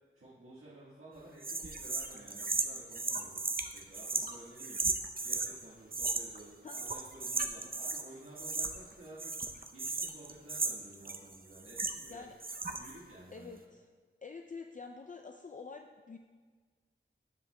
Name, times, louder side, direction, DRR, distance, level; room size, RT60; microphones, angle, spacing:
voice 1, 0.2-12.2 12.7-13.6, right 1 dB, 90° right, -9 dB, 1.5 m, -53 dB
sound 1, 1.4-5.5 5.9-6.4 6.7-8.1 8.4-8.9 9.2-12.1 12.4-13.0, right 3 dB, 45° right, 0.6 m, -35 dB
voice 2, 13.3-13.8 14.2-16.2, left 4 dB, 40° left, 4 dB, 0.4 m, -47 dB
12.5 x 7.5 x 2.2 m, 1.5 s
wide cardioid pair, 45°, 21 cm